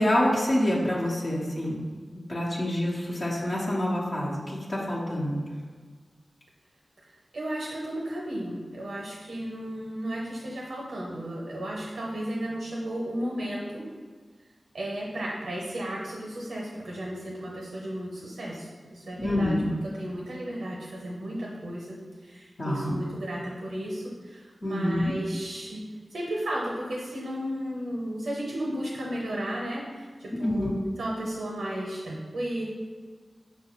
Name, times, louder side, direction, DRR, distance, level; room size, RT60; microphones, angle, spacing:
voice 1, 0.0-1.8 2.3-5.4 19.2-19.7 22.6-23.0 24.6-25.1 30.3-30.7, left 1 dB, 60° left, -7 dB, 0.9 m, -27 dB
voice 2, 7.3-13.8 14.7-19.6 19.8-32.6, right 1 dB, 85° right, -4 dB, 0.6 m, -34 dB
5.7 x 2.2 x 3.0 m, 1.5 s
cardioid pair, 40°, 0 cm